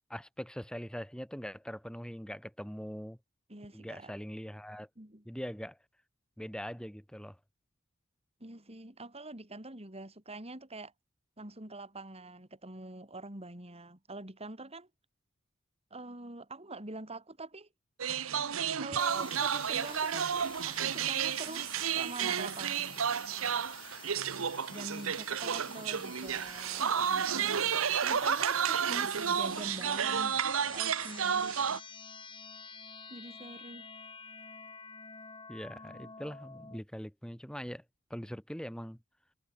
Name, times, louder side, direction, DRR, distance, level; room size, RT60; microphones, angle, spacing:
voice 1, 0.1-3.2 3.7-4.9 5.3-5.8 6.4-7.4 35.5-37.8 38.1-39.0, equal, 5° left, 5.8 m, -42 dB
voice 2, 3.5-4.1 5.0-5.2 8.4-10.9 11.4-14.9 15.9-17.7 18.8-23.2 24.7-27.6 28.0-31.5 32.6-33.9, right 2 dB, 30° right, 4.7 m, -45 dB
sound 1, 18.0-31.8, right 7 dB, 90° right, 0.9 m, -31 dB
sound 2, 19.0-36.8, left 5 dB, 25° left, 7.8 m, -49 dB
head